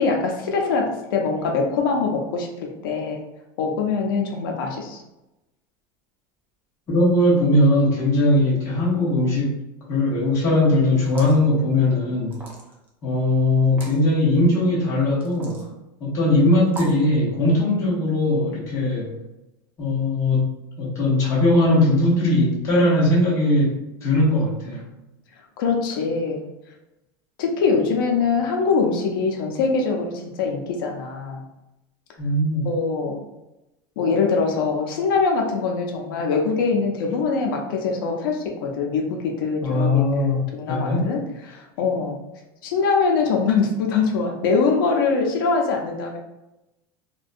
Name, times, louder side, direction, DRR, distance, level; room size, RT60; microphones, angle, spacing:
voice 1, 0.0-3.2 3.6-5.0 25.6-26.4 27.4-31.4 32.6-33.2 34.0-42.2 42.6-46.2, left 4 dB, 90° left, 1 dB, 0.5 m, -23 dB
voice 2, 6.9-9.6 9.9-12.4 13.0-15.6 16.0-19.1 19.8-20.5 20.8-23.7 24.0-24.8 32.2-32.7 39.6-41.1, left 1 dB, 25° left, -6 dB, 0.7 m, -19 dB
sound 1, 11.0-11.4 12.3-12.9 13.6-14.0 15.2-15.7 16.7-17.0, right 2 dB, 15° right, 0.3 m, -38 dB
2.6 x 2.1 x 2.4 m, 0.96 s
supercardioid pair, 175°, 11 cm